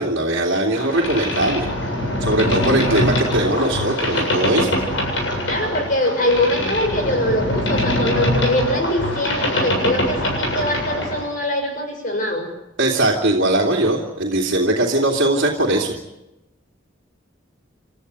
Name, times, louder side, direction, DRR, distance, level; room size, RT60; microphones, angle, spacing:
voice 1, 0.0-1.7 2.2-4.8 12.8-15.9, right 1 dB, 60° right, -3 dB, 2.8 m, -20 dB
Boat Water vehicle, 0.7-11.3, left 1 dB, 65° left, 7.6 m, -23 dB
voice 2, 5.5-12.5, left 1 dB, 40° left, 4 dB, 6.2 m, -22 dB
29.5 x 13.5 x 9.7 m, 0.96 s
head